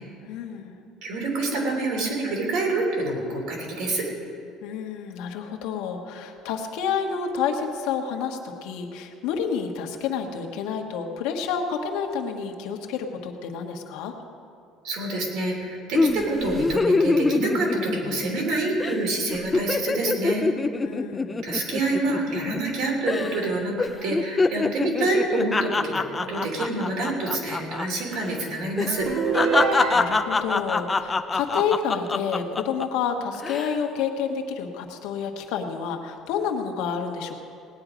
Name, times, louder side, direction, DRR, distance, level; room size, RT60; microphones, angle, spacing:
voice 1, 0.2-0.8 4.6-14.1 20.8-21.4 29.9-37.3, left 6 dB, 75° left, 3 dB, 1.4 m, -29 dB
voice 2, 1.0-4.0 14.8-20.5 21.4-23.7 24.0-29.1, right 2 dB, 60° right, -1 dB, 3.2 m, -27 dB
sound 1, 16.0-18.5 18.8-19.0 19.3-22.8 23.1-23.5 23.8-27.9 28.1-28.3 28.8-32.9 33.3-33.8, left 3 dB, 15° left, 0.3 m, -25 dB
sound 2, 29.1-30.5, right 4 dB, 45° right, 1.1 m, -25 dB
18.0 x 9.7 x 5.1 m, 2.5 s
cardioid pair, 175°, 0 cm